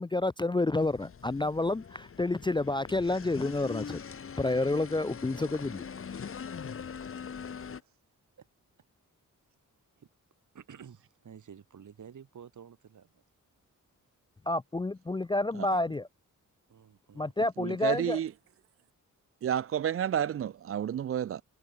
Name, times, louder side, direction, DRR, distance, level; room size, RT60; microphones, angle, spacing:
voice 1, 0.0-4.0 4.4-5.8 14.5-16.1 17.2-18.2, left 2 dB, 15° left, 0.5 m, -29 dB
sound 1, 0.8-7.8, left 6 dB, 45° left, 1.5 m, -42 dB
voice 2, 7.6-7.9 8.4-8.5 10.0-10.1 10.5-13.2 16.7-17.3, right 7 dB, 65° right, 7.6 m, -51 dB
voice 3, 17.6-18.3 19.4-21.4, right 9 dB, 45° right, 0.4 m, -30 dB
wide cardioid pair, 180°, 32 cm